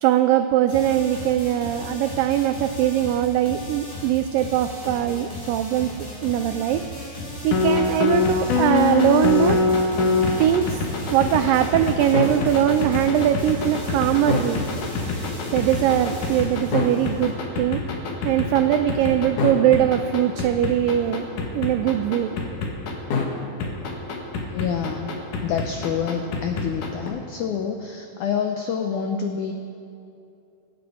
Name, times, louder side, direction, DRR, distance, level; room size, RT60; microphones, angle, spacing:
voice 1, 0.0-5.9 6.2-9.6 10.4-10.9 11.1-14.6 15.5-17.8 18.2-21.3 21.5-22.4, right 11 dB, 90° right, 8 dB, 1.9 m, -21 dB
sound 1, 0.7-17.3, left 1 dB, 15° left, 3.4 m, -36 dB
sound 2, 7.5-23.2 23.6-27.1, left 4 dB, 60° left, 2.8 m, -24 dB
voice 2, 24.5-25.2 25.4-29.5, left 7 dB, 85° left, 4 dB, 1.7 m, -27 dB
25.0 x 9.2 x 4.9 m, 2.6 s
omnidirectional pair, 4.6 m